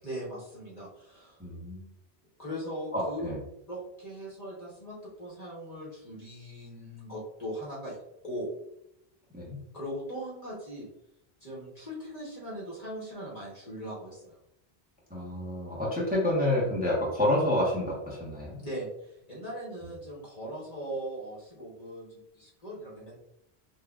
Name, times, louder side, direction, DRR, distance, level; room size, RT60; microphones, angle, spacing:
voice 1, 0.0-1.4 2.4-3.3 3.7-8.0 8.2-8.5 9.7-10.9 11.4-14.4 18.6-23.2, equal, 40° left, -5 dB, 1.1 m, -39 dB
voice 2, 1.4-1.9 2.9-3.4 9.3-9.6 15.1-18.6, left 1 dB, 10° right, -5 dB, 0.9 m, -28 dB
5.8 x 2.4 x 2.3 m, 0.81 s
omnidirectional pair, 1.1 m